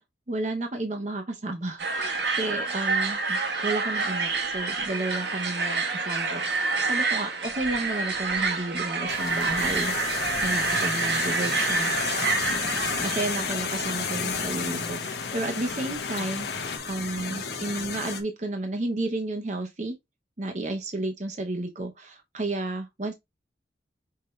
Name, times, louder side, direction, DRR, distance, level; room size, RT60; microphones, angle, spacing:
voice 1, 0.3-10.0 10.4-12.0 12.5-19.9 20.4-23.1, right 2 dB, 40° right, 0.8 m, -32 dB
sound 1, 1.8-13.5, right 4 dB, 70° right, 1.3 m, -28 dB
sound 2, 9.1-16.8, left 5 dB, 80° left, 0.9 m, -36 dB
sound 3, 9.6-18.2, left 5 dB, 60° left, 1.2 m, -32 dB
5.6 x 2.8 x 3.1 m
head